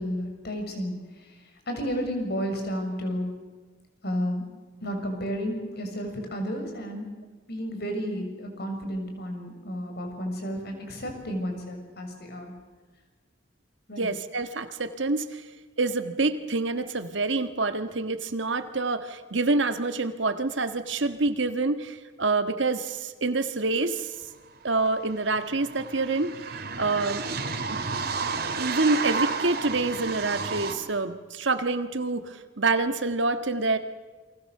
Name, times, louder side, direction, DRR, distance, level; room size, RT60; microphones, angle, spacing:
voice 1, 0.0-3.3 4.0-4.4 4.8-7.1 7.5-12.5 13.9-14.1, equal, 60° left, 4 dB, 6.6 m, -32 dB
voice 2, 14.0-15.4 15.8-24.1 24.6-27.2 27.7-27.8 28.6-33.8, right 3 dB, 75° right, 8 dB, 1.7 m, -27 dB
sound 1, 24.2-24.3 24.5-30.7, right 4 dB, 55° right, 3.2 m, -31 dB
29.0 x 24.0 x 6.7 m, 1.3 s
head